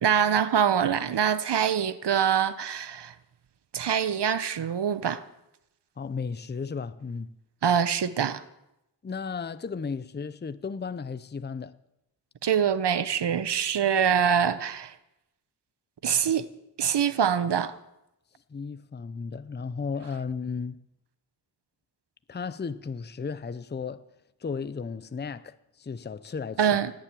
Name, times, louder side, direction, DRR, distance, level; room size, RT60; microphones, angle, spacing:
voice 1, 0.0-3.1 3.7-5.2 7.6-8.4 12.4-14.9 16.0-16.5 16.8-17.7 26.6-26.9, right 8 dB, 75° right, 0.9 m, -24 dB
voice 2, 6.0-7.3 9.0-11.8 18.5-20.8 22.3-24.0 24.4-26.7, left 5 dB, 25° left, 0.6 m, -34 dB
18.0 x 7.5 x 9.1 m
wide cardioid pair, 75°, 41 cm